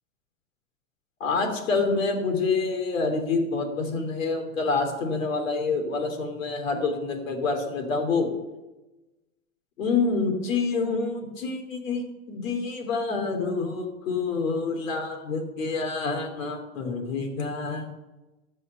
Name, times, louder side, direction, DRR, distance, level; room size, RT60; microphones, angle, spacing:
voice 1, 1.2-8.3 9.8-17.9, left 4 dB, 80° left, 4 dB, 3.0 m, -27 dB
14.0 x 5.6 x 6.7 m, 1.1 s
hypercardioid pair, 140°, 39 cm